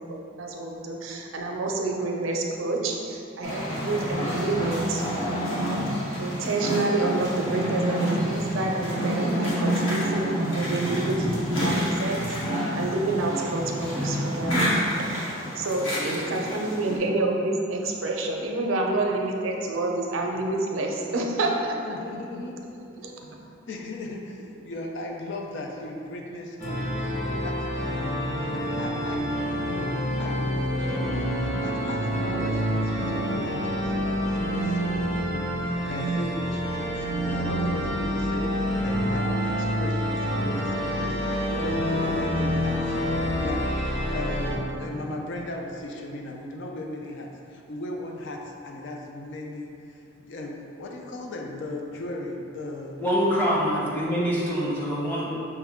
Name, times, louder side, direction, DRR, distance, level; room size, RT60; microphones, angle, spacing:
voice 1, 0.0-5.3 6.2-12.4 12.7-14.8 15.6-21.8 23.0-23.1, right 2 dB, 85° right, 1 dB, 0.5 m, -28 dB
sound 1, 3.4-17.0, equal, 85° left, 1.2 m, -28 dB
sound 2, 7.4-14.6, right 1 dB, 35° right, 0.4 m, -40 dB
voice 2, 15.7-16.6 21.8-22.8 23.7-53.0, left 2 dB, 65° left, 1 dB, 0.5 m, -37 dB
sound 3, 26.6-44.5, equal, 35° left, 1.2 m, -27 dB
voice 3, 53.0-55.3, equal, 10° left, -7 dB, 0.9 m, -25 dB
5.9 x 2.2 x 3.5 m, 2.6 s
head